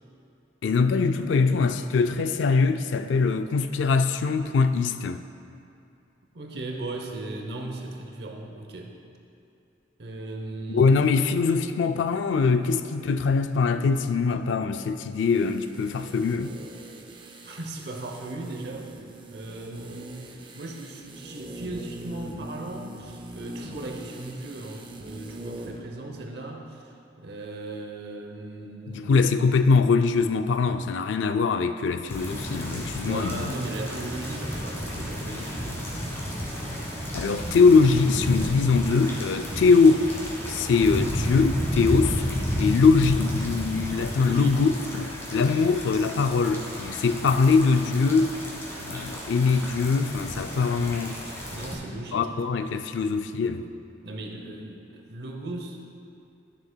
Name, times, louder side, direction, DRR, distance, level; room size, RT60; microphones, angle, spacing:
voice 1, 0.6-5.2 10.7-16.5 28.9-33.5 37.1-40.1 40.5-42.2 42.6-48.4 48.8-51.2 52.1-53.7, left 4 dB, 75° left, 0.3 m, -22 dB
voice 2, 6.3-9.0 10.0-10.9 17.4-18.9 19.3-29.2 33.0-35.9 44.2-44.6 51.5-52.4 54.0-55.8, right 2 dB, 55° right, 0.8 m, -37 dB
sound 1, 15.2-25.9 26.1-26.2, right 1 dB, 25° right, 0.4 m, -43 dB
sound 2, 32.1-51.8, equal, 15° left, 1.2 m, -32 dB
12.5 x 6.7 x 2.2 m
head